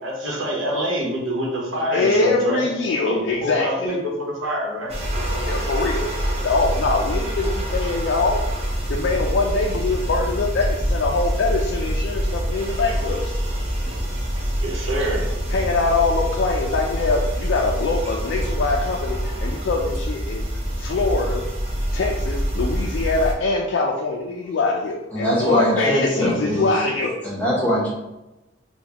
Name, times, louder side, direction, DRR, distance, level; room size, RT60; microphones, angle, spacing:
voice 1, 0.0-2.6 3.0-5.1 14.6-15.3, equal, 90° right, -2 dB, 0.9 m, -26 dB
voice 2, 1.9-3.9 5.5-6.1 6.4-8.5 8.9-13.4 15.5-20.5 20.7-21.4 21.9-27.1, left 3 dB, 65° left, 0 dB, 0.3 m, -23 dB
sound 1, 4.9-23.3, equal, 30° right, 0.6 m, -25 dB
voice 3, 25.1-26.7 27.2-27.9, equal, 10° left, -6 dB, 1.0 m, -22 dB
3.8 x 2.2 x 2.9 m, 0.99 s
head